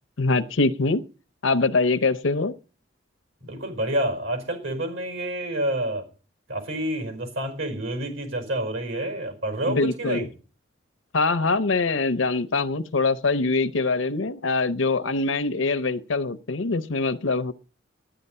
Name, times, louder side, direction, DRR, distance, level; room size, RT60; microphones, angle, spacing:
voice 1, 0.2-1.0 1.4-2.5 9.7-10.3 11.1-17.5, left 3 dB, 85° left, 10 dB, 0.8 m, -23 dB
voice 2, 3.4-6.0 6.5-10.3, right 1 dB, 80° right, 7 dB, 5.3 m, -28 dB
13.5 x 10.5 x 5.6 m, 0.35 s
head